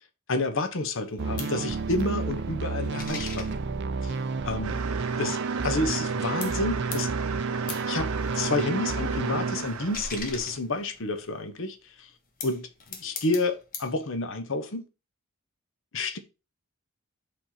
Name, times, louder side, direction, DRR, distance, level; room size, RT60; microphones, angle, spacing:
voice 1, 0.3-3.6 4.0-4.2 4.4-4.8 5.2-5.4 5.6-7.1 7.9-8.1 8.3-12.1 12.4-14.9 15.9-16.2, left 2 dB, 60° left, 1.0 m, -29 dB
sound 1, 1.0-6.1 6.4-11.4 12.1-14.0, left 4 dB, 40° left, 1.4 m, -42 dB
sound 2, 1.2-9.7, right 4 dB, 55° right, 0.4 m, -30 dB
sound 3, 4.6-10.6, right 6 dB, 80° right, 0.7 m, -36 dB
5.2 x 4.2 x 5.8 m
head